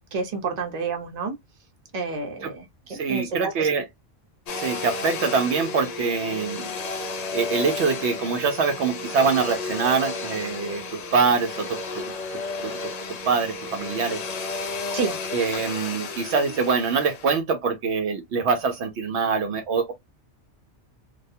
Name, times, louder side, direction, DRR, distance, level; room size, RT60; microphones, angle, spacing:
voice 1, 0.1-1.4 1.9-2.7 3.1-3.7 14.9-15.2, right 4 dB, 40° right, 0.7 m, -29 dB
voice 2, 2.9-3.9 4.5-6.7 7.3-14.2 15.3-19.9, right 5 dB, 70° right, 0.8 m, -24 dB
Domestic sounds home sounds, 4.5-17.3, left 3 dB, 65° left, 0.4 m, -33 dB
2.4 x 2.2 x 2.6 m
omnidirectional pair, 1.2 m